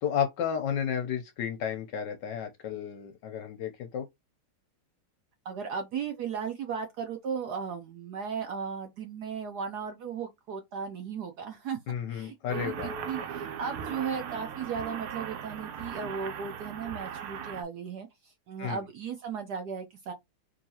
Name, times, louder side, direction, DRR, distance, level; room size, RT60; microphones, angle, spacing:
voice 1, 0.0-4.0 11.9-13.0 18.6-18.9, left 8 dB, 70° left, 1.1 m, -32 dB
voice 2, 5.4-11.8 12.1-20.1, right 6 dB, 70° right, 1.0 m, -36 dB
sound 1, 12.5-17.6, right 7 dB, 85° right, 1.5 m, -38 dB
3.8 x 2.9 x 2.7 m
omnidirectional pair, 2.3 m